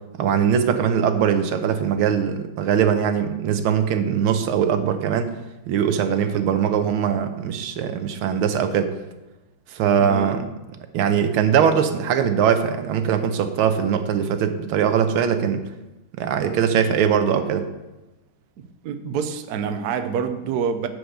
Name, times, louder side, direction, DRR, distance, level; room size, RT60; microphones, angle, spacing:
voice 1, 0.2-5.3 5.7-8.9 9.7-10.5 10.9-15.6 16.2-17.7, right 8 dB, 80° right, 9 dB, 1.6 m, -21 dB
voice 2, 10.0-10.4 18.6-20.9, right 6 dB, 65° right, 8 dB, 1.0 m, -27 dB
10.0 x 4.7 x 6.6 m, 1.0 s
omnidirectional pair, 2.3 m